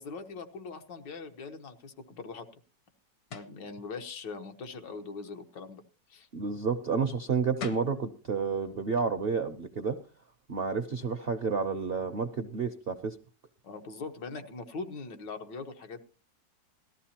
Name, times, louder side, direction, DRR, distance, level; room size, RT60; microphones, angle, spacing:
voice 1, 0.0-2.5 3.3-5.8 6.1-6.3 13.6-16.0, left 4 dB, 85° left, 5 dB, 1.9 m, -41 dB
sound 1, 3.3-3.6 7.3-7.4 7.6-8.0, left 6 dB, 70° left, 1.6 m, -40 dB
voice 2, 6.3-10.0 10.5-13.2, right 5 dB, 60° right, 6 dB, 0.6 m, -30 dB
18.5 x 13.5 x 2.9 m, 0.34 s
omnidirectional pair, 1.9 m